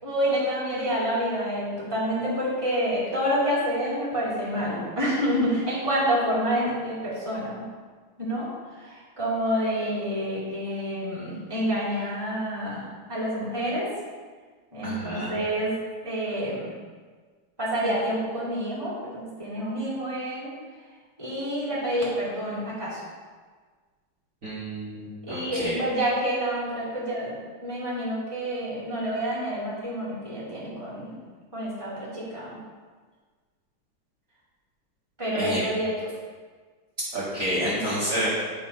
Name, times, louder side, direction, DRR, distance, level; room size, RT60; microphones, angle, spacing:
voice 1, 0.0-7.7 8.2-8.5 8.8-12.8 13.1-13.9 14.7-15.8 16.0-16.7 17.6-20.5 21.2-23.0 25.2-31.2 31.5-32.6 35.2-36.1 37.7-37.8 38.2-38.3, equal, 10° right, -8 dB, 2.6 m, -28 dB
voice 2, 14.8-15.3 24.4-25.8 35.3-35.6 37.1-38.3, equal, 40° right, -10 dB, 2.1 m, -29 dB
10.0 x 4.1 x 5.5 m, 1.5 s
omnidirectional pair, 2.2 m